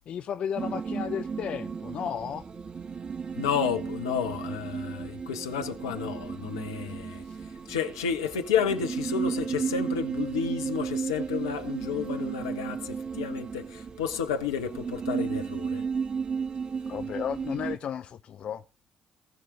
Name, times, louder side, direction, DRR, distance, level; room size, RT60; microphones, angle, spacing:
voice 1, 0.1-2.4 7.2-7.4 16.9-18.6, left 8 dB, 60° left, 0.6 m, -34 dB
sound 1, 0.6-17.8, right 6 dB, 45° right, 1.1 m, -34 dB
voice 2, 3.3-15.8, left 7 dB, 85° left, 1.2 m, -31 dB
19.0 x 6.5 x 4.0 m
hypercardioid pair, 40°, 2 cm